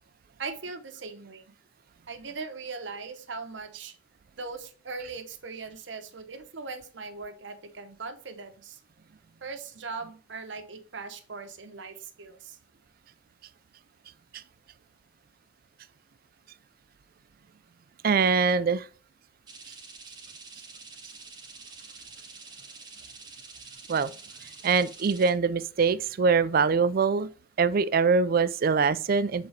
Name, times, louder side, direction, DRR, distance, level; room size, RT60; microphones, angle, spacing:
voice 1, 0.4-1.5 2.1-3.9 4.4-8.8 9.4-12.6, right 4 dB, 65° right, 0.8 m, -39 dB
voice 2, 18.0-18.9 23.9-24.1 24.6-27.3 27.6-29.5, right 5 dB, 50° right, 0.4 m, -23 dB
sound 1, 19.5-25.3, right 4 dB, 20° right, 0.9 m, -47 dB
8.0 x 4.0 x 3.2 m
head